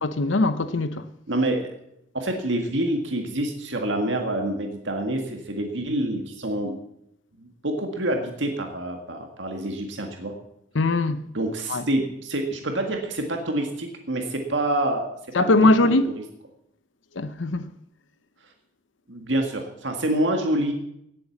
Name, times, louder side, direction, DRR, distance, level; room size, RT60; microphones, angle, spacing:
voice 1, 0.0-1.1 10.7-11.3 11.7-11.9 15.3-16.2 17.1-17.7, left 2 dB, 85° left, 0.8 m, -21 dB
voice 2, 1.3-1.7 2.1-6.7 7.4-10.3 11.3-15.5 15.9-16.2 19.1-20.7, right 1 dB, 75° right, 1.9 m, -27 dB
18.0 x 8.0 x 7.2 m
head